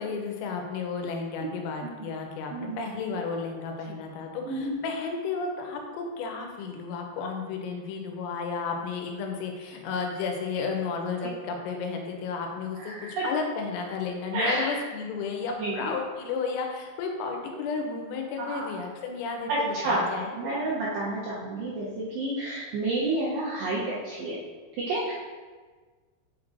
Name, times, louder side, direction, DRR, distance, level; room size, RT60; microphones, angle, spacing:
voice 1, 0.0-20.6, left 5 dB, 85° left, 2 dB, 3.4 m, -33 dB
voice 2, 12.8-13.3 14.3-14.8 15.6-15.9 18.4-18.7 19.5-20.1 20.4-24.4 24.8-25.1, right 2 dB, 80° right, -7 dB, 2.4 m, -29 dB
6.5 x 6.0 x 2.5 m, 1.4 s
omnidirectional pair, 5.9 m